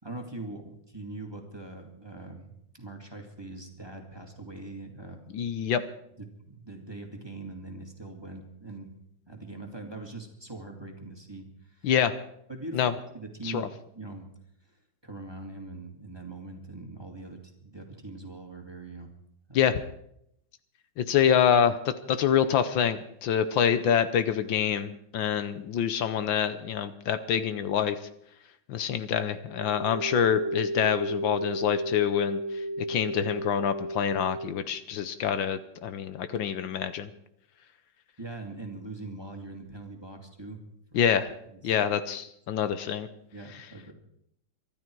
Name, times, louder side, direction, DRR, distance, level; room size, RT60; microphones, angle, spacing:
voice 1, 0.0-5.2 6.2-8.9 9.3-11.9 12.5-12.9 13.1-13.7 13.9-14.3 14.6-19.1 19.5-19.7 38.2-40.6 40.9-41.1 41.5-41.7 43.3-43.9, right 2 dB, 10° right, 3 dB, 2.1 m, -42 dB
voice 2, 5.3-5.8 11.8-12.1 12.7-12.9 13.4-13.7 19.5-19.8 21.0-28.0 28.7-32.4 32.9-37.1 40.9-41.3 41.6-43.1, left 8 dB, 75° left, 12 dB, 1.5 m, -26 dB
sound 1, 29.5-34.5, right 1 dB, 70° right, 1.5 m, -33 dB
24.0 x 12.5 x 4.6 m, 0.75 s
omnidirectional pair, 2.2 m